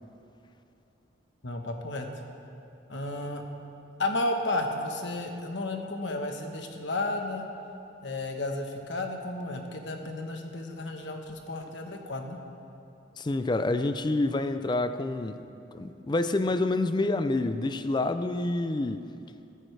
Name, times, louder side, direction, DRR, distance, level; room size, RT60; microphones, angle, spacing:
voice 1, 1.4-2.1 2.9-3.4 4.0-7.5 8.0-12.4, left 2 dB, 65° left, 3 dB, 1.2 m, -32 dB
voice 2, 13.2-15.4 15.7-19.0, left 2 dB, 25° left, 10 dB, 0.4 m, -27 dB
14.0 x 14.0 x 3.3 m, 2.7 s
head